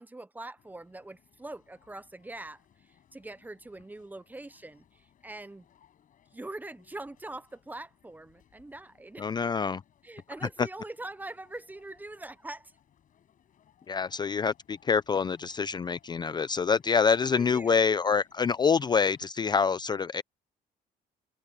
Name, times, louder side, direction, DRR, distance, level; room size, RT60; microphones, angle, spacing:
voice 1, 0.0-5.6 6.3-9.3 10.0-12.7 17.3-17.9, right 2 dB, 10° right, 0.8 m, -43 dB
sound 1, 0.6-19.3, left 9 dB, 50° left, 7.2 m, -65 dB
voice 2, 9.2-9.8 10.6-10.7 13.9-20.2, left 5 dB, 25° left, 0.4 m, -26 dB
cardioid pair, 110°, 17 cm